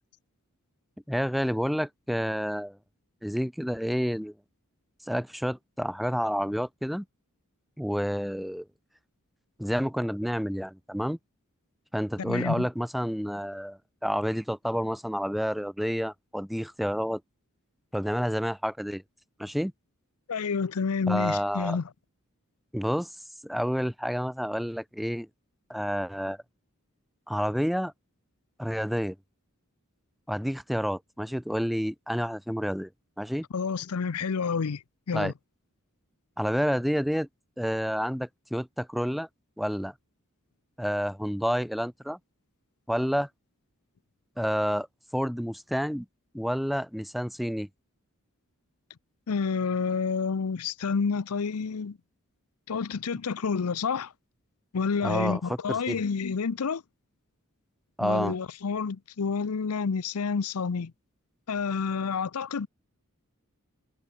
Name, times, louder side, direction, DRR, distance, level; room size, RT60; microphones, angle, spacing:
voice 1, 1.1-2.8 3.2-4.3 5.1-7.0 7.8-8.7 9.6-11.2 11.9-17.2 17.9-19.0 19.4-19.7 21.1-21.8 22.7-23.1 23.4-25.3 25.7-26.4 27.3-27.9 28.6-29.2 30.3-32.9 33.2-33.5 35.1-35.3 36.4-37.3 37.6-39.3 39.6-39.9 40.8-42.2 42.9-43.3 44.4-44.9 45.1-46.1 46.3-47.7 55.0-55.4 55.7-56.0 58.0-58.3, equal, ahead, 0.5 m, -29 dB
voice 2, 12.2-12.7 20.3-21.8 33.5-34.8 35.1-35.3 49.3-52.0 52.7-54.1 54.7-56.8 58.0-60.9 61.5-62.7, left 5 dB, 80° left, 0.6 m, -29 dB
head